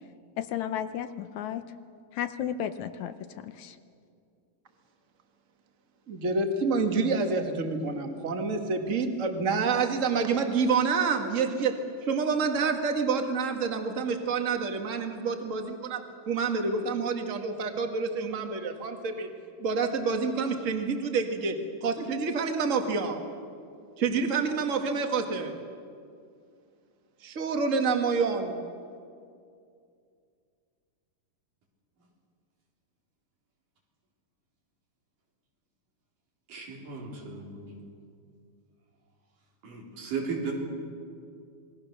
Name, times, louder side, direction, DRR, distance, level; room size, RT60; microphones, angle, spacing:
voice 1, 0.4-1.7 2.1-3.8, left 9 dB, 75° left, 10 dB, 1.9 m, -33 dB
voice 2, 6.1-11.8 12.1-19.3 19.6-21.5 21.8-23.2 24.0-25.6 27.2-28.6, right 4 dB, 30° right, 5 dB, 1.6 m, -28 dB
voice 3, 36.5-37.8 39.6-40.5, right 5 dB, 85° right, -1 dB, 5.3 m, -35 dB
27.0 x 21.0 x 6.7 m, 2.3 s
omnidirectional pair, 3.7 m